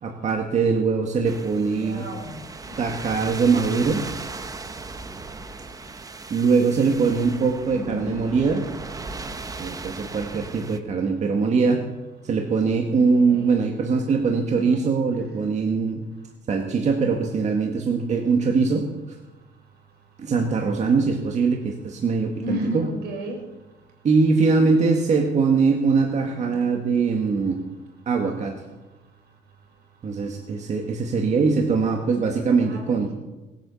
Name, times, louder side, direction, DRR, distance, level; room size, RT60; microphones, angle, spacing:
voice 1, 0.0-2.0 2.8-4.0 6.3-8.6 9.6-11.8 12.2-16.0 16.5-18.8 20.2-22.9 24.0-27.6 28.0-28.5 30.0-33.1, right 4 dB, 45° right, 2 dB, 1.8 m, -22 dB
sound 1, 1.2-10.8, right 3 dB, 20° right, 1.1 m, -37 dB
voice 2, 1.7-2.3 7.7-8.2 12.7-13.6 14.4-14.8 22.4-23.4 26.5-26.8 32.6-33.1, equal, 75° right, 2 dB, 5.1 m, -33 dB
20.0 x 9.0 x 7.1 m, 1.1 s
cardioid pair, 110°, 17 cm